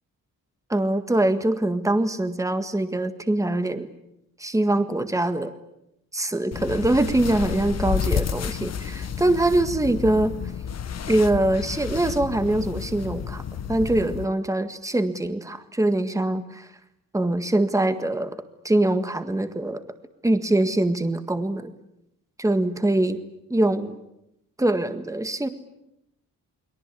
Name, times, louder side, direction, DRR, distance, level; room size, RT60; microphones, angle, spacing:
voice 1, 0.7-3.9 4.4-5.5 6.1-10.3 11.1-13.4 13.7-16.7 17.1-19.8 20.2-21.7 22.4-23.2 23.5-24.0 24.6-25.5, right 1 dB, 10° right, 9 dB, 1.7 m, -23 dB
sound 1, 6.5-14.3, left 7 dB, 50° left, 1.1 m, -31 dB
29.5 x 22.5 x 8.5 m, 0.84 s
wide cardioid pair, 140°, 34 cm